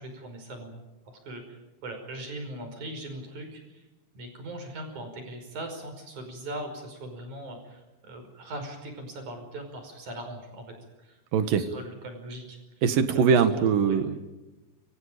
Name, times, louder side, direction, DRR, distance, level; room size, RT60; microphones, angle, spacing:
voice 1, 0.0-3.9 4.1-11.2 11.6-12.8 13.1-14.0, right 1 dB, 55° right, 5 dB, 6.7 m, -40 dB
voice 2, 12.8-14.2, right 6 dB, 75° right, 10 dB, 3.2 m, -22 dB
29.5 x 25.0 x 5.2 m, 1.1 s
omnidirectional pair, 4.1 m